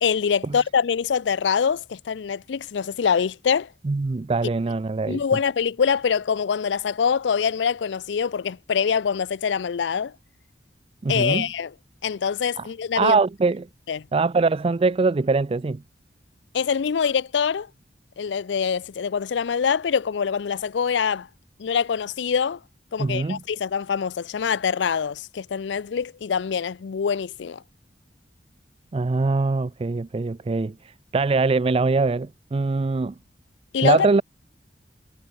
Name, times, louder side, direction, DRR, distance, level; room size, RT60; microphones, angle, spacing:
voice 1, 0.0-3.7 5.1-10.1 11.1-11.7 12.0-13.2 13.9-14.1 16.5-17.7 18.2-21.3 21.6-22.6 22.9-27.6 33.7-34.2, left 6 dB, 90° left, 0.4 m, -24 dB
voice 2, 3.8-5.2 11.0-11.5 12.6-12.7 13.0-13.7 14.1-15.8 23.0-23.4 28.9-33.1 33.8-34.2, right 3 dB, 30° right, 0.4 m, -22 dB
head